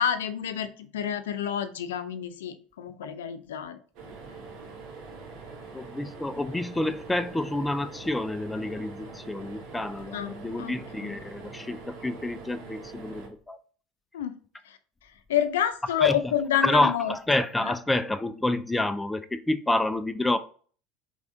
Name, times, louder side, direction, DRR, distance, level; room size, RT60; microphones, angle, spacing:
voice 1, 0.0-3.8 10.1-11.1 14.1-14.4 14.6-17.2 17.6-17.7, left 9 dB, 85° left, 0.5 m, -29 dB
sound 1, 4.0-13.3, right 4 dB, 60° right, 1.4 m, -43 dB
voice 2, 5.7-13.6 16.0-16.1 16.6-20.4, left 1 dB, 10° left, 0.4 m, -28 dB
4.7 x 3.4 x 2.6 m
hypercardioid pair, 85°, 0 cm